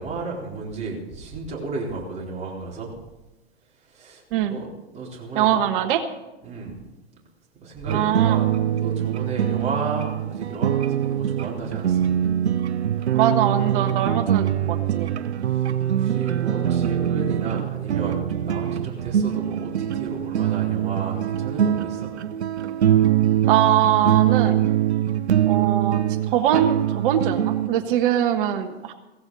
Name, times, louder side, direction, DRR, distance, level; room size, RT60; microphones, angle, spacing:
voice 1, 0.0-2.9 3.9-4.2 4.5-4.7 4.9-5.7 6.4-6.9 7.6-8.5 8.8-12.1 15.5-22.1, right 3 dB, 20° right, -3 dB, 4.2 m, -33 dB
voice 2, 5.3-6.0 7.9-8.4 13.1-15.1 23.5-24.6 25.5-26.0 26.3-28.9, right 10 dB, 55° right, 8 dB, 1.5 m, -22 dB
sound 1, 7.9-27.7, right 10 dB, 85° right, 0.8 m, -23 dB
16.5 x 15.5 x 4.1 m, 1.1 s
hypercardioid pair, 120°, 33 cm